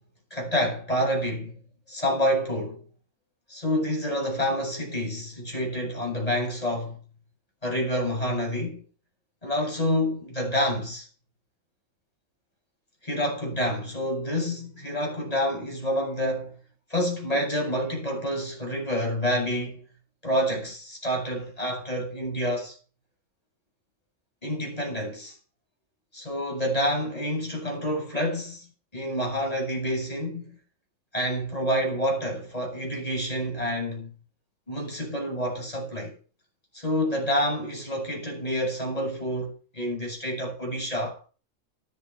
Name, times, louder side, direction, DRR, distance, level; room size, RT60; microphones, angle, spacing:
voice 1, 0.3-1.6 1.9-2.8 3.5-7.0 7.6-8.8 9.4-11.1 13.0-16.6 16.9-19.8 20.2-22.8 24.4-25.4 26.1-28.7 28.9-30.6 31.1-34.1 34.7-36.2 36.7-41.2, equal, 25° left, 7.7 m, -28 dB
14.0 x 10.5 x 4.8 m
omnidirectional pair, 1.6 m